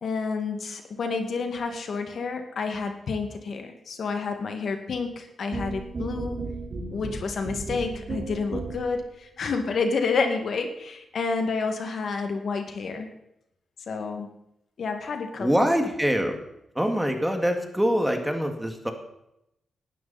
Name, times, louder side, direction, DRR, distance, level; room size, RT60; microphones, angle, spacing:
voice 1, 0.0-6.4 6.9-13.1 13.9-14.3 14.8-15.7, left 4 dB, 65° left, 6 dB, 2.1 m, -29 dB
sound 1, 5.5-9.0, right 3 dB, 55° right, 4.3 m, -34 dB
voice 2, 15.4-16.4 16.8-18.9, equal, 5° right, 5 dB, 2.2 m, -24 dB
18.0 x 12.5 x 4.3 m, 0.81 s
cardioid pair, 95°, 0 cm